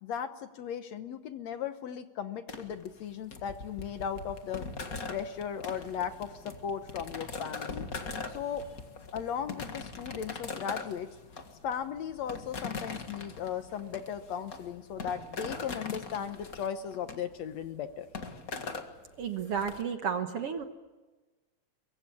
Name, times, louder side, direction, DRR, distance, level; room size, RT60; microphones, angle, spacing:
voice 1, 0.0-4.7 5.1-7.9 8.3-8.7 9.1-11.1 11.6-18.1, left 8 dB, 65° left, 9 dB, 2.1 m, -37 dB
sound 1, 2.5-19.8, left 4 dB, 35° left, 1.7 m, -41 dB
voice 2, 19.2-20.6, right 7 dB, 55° right, 7 dB, 1.9 m, -32 dB
24.0 x 23.0 x 8.5 m, 1.2 s
omnidirectional pair, 3.7 m